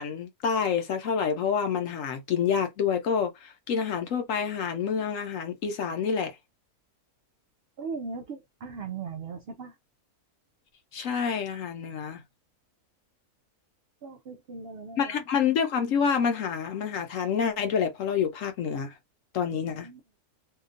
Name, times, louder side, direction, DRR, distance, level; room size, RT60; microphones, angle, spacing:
voice 1, 0.0-6.3 10.9-12.2 15.0-18.9 19.3-19.9, left 7 dB, 65° left, 1.0 m, -28 dB
voice 2, 7.8-9.7 14.0-15.1 19.5-20.0, right 5 dB, 80° right, 0.5 m, -38 dB
2.8 x 2.4 x 2.5 m
omnidirectional pair, 1.6 m